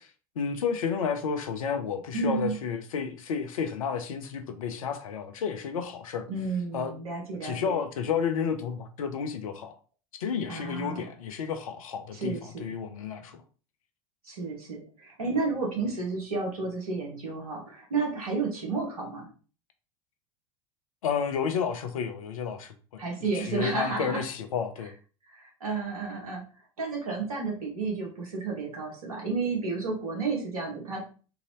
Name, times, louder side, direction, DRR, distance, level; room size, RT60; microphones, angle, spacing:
voice 1, 0.4-6.3 6.7-6.9 7.4-9.7 10.2-13.4 21.0-24.9, left 6 dB, 70° left, 0.6 m, -31 dB
voice 2, 2.1-2.6 6.3-7.8 10.5-11.1 12.1-12.7 14.2-19.3 23.0-24.3 25.3-26.4 26.8-31.0, right 4 dB, 75° right, 1.5 m, -31 dB
3.9 x 2.7 x 3.0 m
figure-of-eight pair, 75°, 19 cm